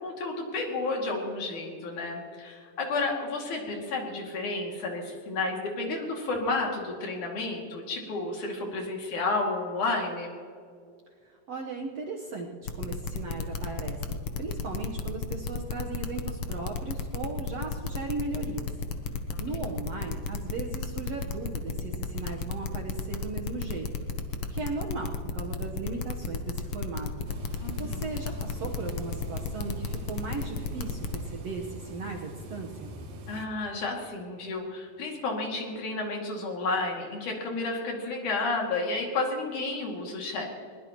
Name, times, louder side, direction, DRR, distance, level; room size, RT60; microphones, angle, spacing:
voice 1, 0.0-10.3 19.3-19.4 27.6-28.1 33.3-40.5, left 3 dB, 60° left, 0 dB, 3.7 m, -31 dB
voice 2, 11.3-18.7 19.1-23.9 24.5-27.1 27.5-32.9, right 4 dB, 60° right, 0 dB, 1.7 m, -37 dB
sound 1, 12.7-31.2, left 5 dB, 80° left, 1.2 m, -32 dB
sound 2, 27.2-33.5, right 1 dB, 80° right, 3.4 m, -43 dB
22.0 x 20.0 x 3.0 m, 2.3 s
omnidirectional pair, 4.1 m